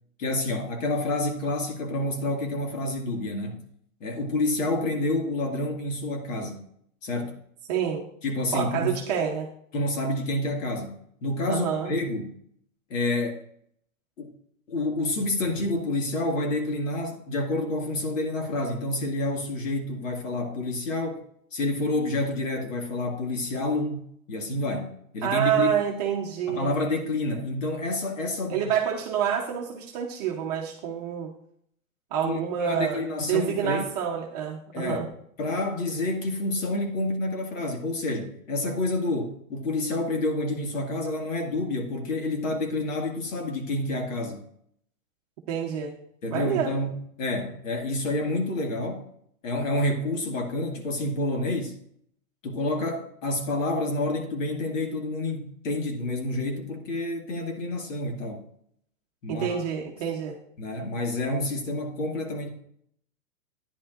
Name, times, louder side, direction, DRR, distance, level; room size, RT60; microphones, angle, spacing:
voice 1, 0.2-3.6 4.0-6.6 7.0-7.3 8.2-9.0 9.7-12.3 12.9-13.4 14.2-14.3 14.7-25.7 26.5-28.6 32.2-33.8 34.7-35.1 35.4-44.4 46.2-49.0 49.4-51.8 52.4-58.4 59.2-59.6 60.6-62.5, left 2 dB, 65° left, 3 dB, 2.0 m, -28 dB
voice 2, 7.7-8.0 8.5-9.5 11.5-11.9 25.2-26.7 28.5-31.3 32.1-33.0 33.3-35.1 45.5-45.9 46.3-46.7 59.3-60.3, right 8 dB, 30° right, -1 dB, 0.8 m, -27 dB
12.0 x 10.0 x 2.5 m, 0.68 s
supercardioid pair, 175°, 42 cm